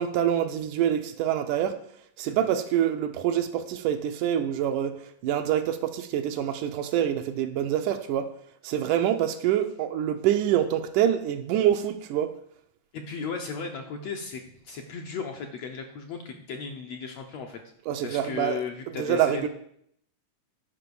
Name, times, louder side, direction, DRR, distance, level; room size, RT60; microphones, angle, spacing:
voice 1, 0.0-1.8 2.2-8.3 8.6-12.3 17.9-18.6 19.0-19.5, right 10 dB, 75° right, 2.0 m, -26 dB
voice 2, 12.9-17.6 18.0-19.5, left 5 dB, 70° left, 1.6 m, -35 dB
11.5 x 5.3 x 6.8 m
omnidirectional pair, 3.9 m